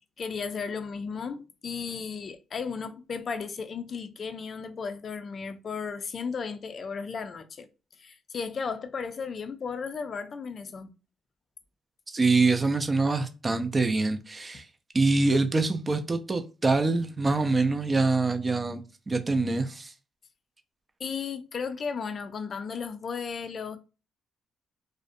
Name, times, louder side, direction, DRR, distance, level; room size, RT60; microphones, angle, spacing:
voice 1, 0.2-7.7 8.0-10.9 21.0-23.8, left 5 dB, 50° left, 0.4 m, -35 dB
voice 2, 12.1-14.7 14.9-19.9, right 3 dB, 25° right, 0.4 m, -25 dB
2.4 x 2.1 x 2.5 m
cardioid pair, 90°, 0 cm